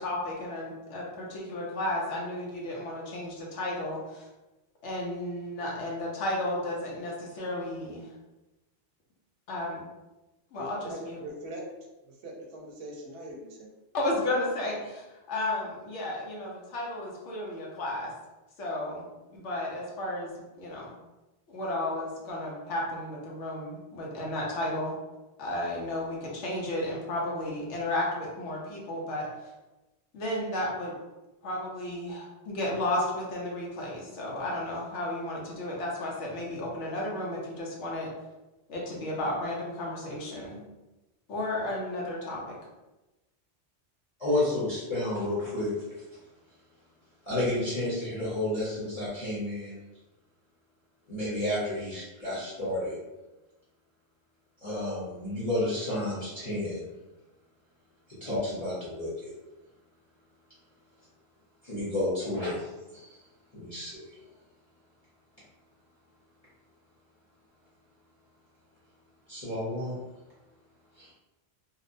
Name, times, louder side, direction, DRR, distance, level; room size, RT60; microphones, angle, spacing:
voice 1, 0.0-4.3 4.8-8.1 9.5-9.8 10.5-11.2 13.9-18.1 18.6-19.0 19.3-20.9 21.5-24.9 25.4-29.5 30.1-31.0 31.4-38.1 38.7-40.6 41.3-42.6, left 1 dB, 75° left, -3 dB, 1.0 m, -33 dB
voice 2, 10.6-11.6 12.0-13.7, right 1 dB, 70° right, -1 dB, 0.9 m, -42 dB
voice 3, 44.2-45.7 47.3-49.8 51.1-53.0 54.6-56.9 58.2-59.3 61.6-63.2 63.5-64.1 69.3-69.9 71.0-71.1, left 1 dB, 35° left, -11 dB, 0.8 m, -31 dB
2.8 x 2.1 x 2.5 m, 1.0 s
omnidirectional pair, 1.2 m